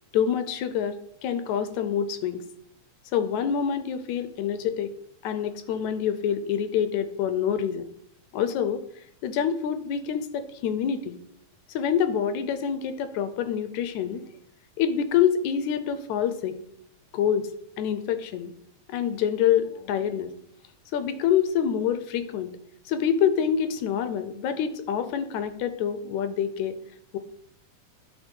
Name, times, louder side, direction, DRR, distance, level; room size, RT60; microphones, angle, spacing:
voice 1, 0.1-2.4 3.1-4.9 5.2-7.8 8.3-8.8 9.2-11.2 11.7-14.2 14.8-16.6 17.1-17.4 17.8-18.5 18.9-20.3 20.9-22.5 22.9-26.8 27.1-27.2, left 8 dB, 80° left, 11 dB, 1.9 m, -26 dB
10.5 x 4.9 x 4.4 m, 0.72 s
omnidirectional pair, 3.4 m